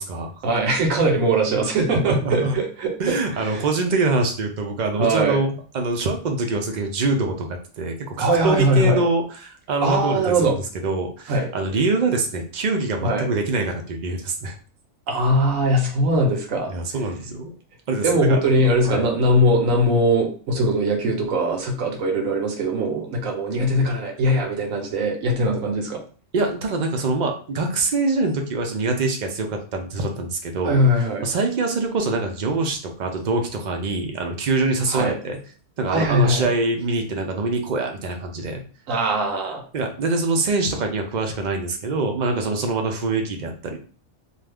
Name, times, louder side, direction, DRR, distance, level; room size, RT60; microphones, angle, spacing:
voice 1, 0.4-3.2 3.4-3.6 5.0-5.4 8.2-9.0 9.8-10.6 11.3-11.5 13.0-13.3 15.1-16.7 18.0-26.0 30.6-31.2 34.9-35.2 35.9-36.5 38.9-39.6, right 1 dB, 85° right, 1 dB, 1.2 m, -21 dB
voice 2, 1.9-2.6 3.0-14.5 16.7-17.5 17.9-18.4 18.8-19.1 26.3-30.8 31.2-35.4 35.8-38.6 39.7-43.8, right 3 dB, 50° right, 3 dB, 0.5 m, -24 dB
2.6 x 2.3 x 3.3 m, 0.40 s
omnidirectional pair, 1.3 m